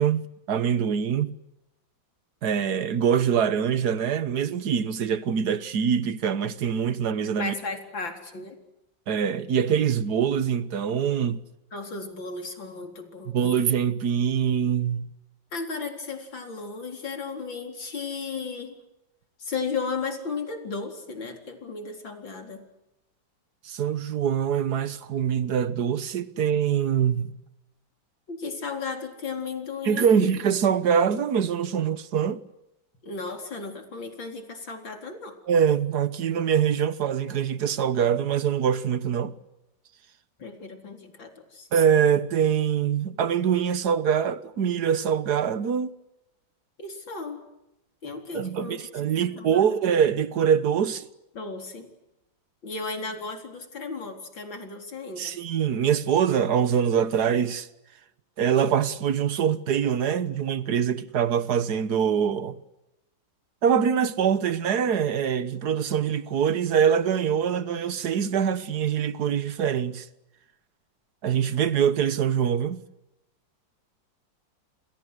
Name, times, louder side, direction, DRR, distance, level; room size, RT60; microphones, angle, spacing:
voice 1, 0.0-1.3 2.4-7.5 9.1-11.4 13.3-15.1 23.7-27.3 29.9-32.4 35.5-39.4 41.7-45.9 48.3-51.1 55.2-57.7 58.4-62.6 63.6-70.1 71.2-72.8, right 8 dB, 60° right, 1.7 m, -24 dB
voice 2, 7.4-8.6 11.7-13.4 15.5-18.7 19.4-22.6 28.3-30.3 33.0-35.3 40.4-41.7 46.8-47.4 48.0-48.9 49.4-49.7 51.3-51.9 52.6-55.3, left 4 dB, 85° left, 4.8 m, -35 dB
29.5 x 28.0 x 6.5 m
omnidirectional pair, 2.0 m